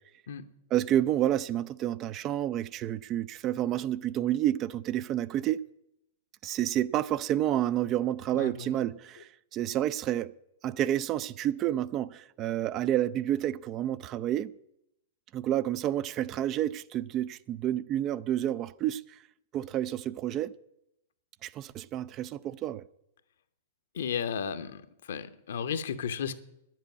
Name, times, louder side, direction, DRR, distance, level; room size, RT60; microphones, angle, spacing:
voice 1, 0.7-5.6 6.4-10.3 10.6-14.5 15.3-19.2 19.5-20.5 21.4-22.9, right 12 dB, 30° right, 0.4 m, -29 dB
voice 2, 8.3-8.8 23.9-24.8 25.1-26.4, left 7 dB, 60° left, 0.9 m, -34 dB
10.5 x 7.6 x 9.5 m
figure-of-eight pair, 105°, 0 cm